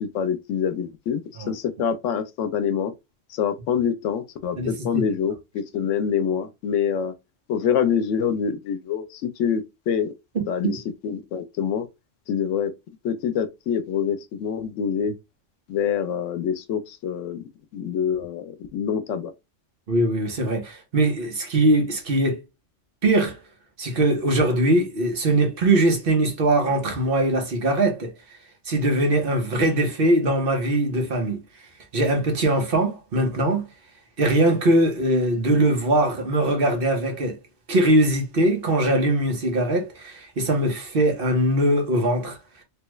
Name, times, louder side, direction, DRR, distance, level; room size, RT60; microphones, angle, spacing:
voice 1, 0.0-1.2 1.5-2.9 3.3-7.1 7.5-10.1 10.5-11.9 12.3-12.7 13.0-15.1 15.7-19.3, left 7 dB, 85° left, 0.9 m, -26 dB
voice 2, 4.6-5.1 10.3-10.7 19.9-22.4 23.0-23.4 23.8-28.1 28.7-31.4 31.9-33.7 34.2-37.4 37.7-42.4, right 1 dB, 50° right, 1.1 m, -21 dB
3.3 x 2.3 x 3.0 m
omnidirectional pair, 1.2 m